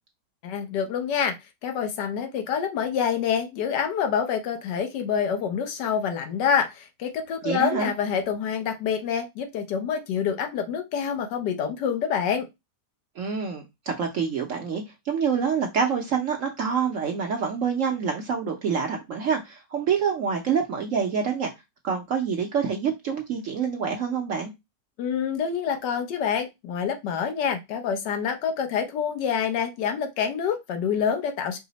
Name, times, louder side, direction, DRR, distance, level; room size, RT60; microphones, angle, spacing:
voice 1, 0.4-1.3 1.6-12.5 25.0-31.6, left 7 dB, 75° left, 1.3 m, -27 dB
voice 2, 7.4-7.9 13.2-21.5 21.8-24.5, right 6 dB, 65° right, 0.8 m, -26 dB
4.8 x 2.0 x 3.9 m
omnidirectional pair, 1.9 m